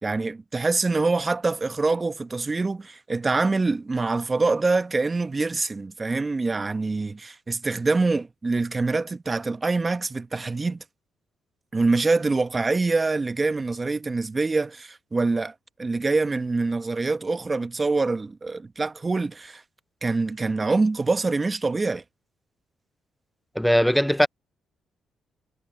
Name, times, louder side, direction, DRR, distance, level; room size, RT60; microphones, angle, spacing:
voice 1, 0.0-10.8 11.7-19.6 20.0-22.0, right 3 dB, 25° right, 1.0 m, -25 dB
voice 2, 23.6-24.3, equal, ahead, 0.4 m, -19 dB
cardioid pair, 90°, 0 cm